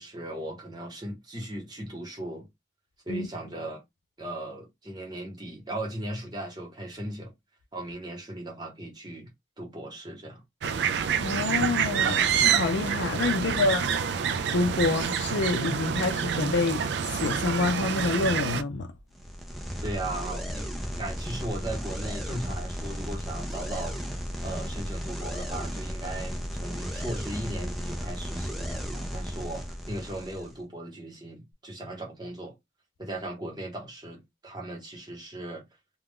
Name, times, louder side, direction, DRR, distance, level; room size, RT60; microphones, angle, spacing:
voice 1, 0.0-2.5 3.1-3.8 4.2-7.3 7.7-9.3 9.6-10.4 13.3-13.6 19.8-20.7 20.9-24.0 24.4-32.5 33.0-35.6, right 1 dB, 20° right, 1.0 m, -37 dB
sound 1, 10.6-18.6, right 7 dB, 65° right, 0.3 m, -27 dB
voice 2, 11.2-13.9 14.5-18.9, left 3 dB, 70° left, 0.5 m, -27 dB
sound 2, 19.1-30.6, equal, ahead, 0.5 m, -34 dB
2.4 x 2.2 x 3.5 m
head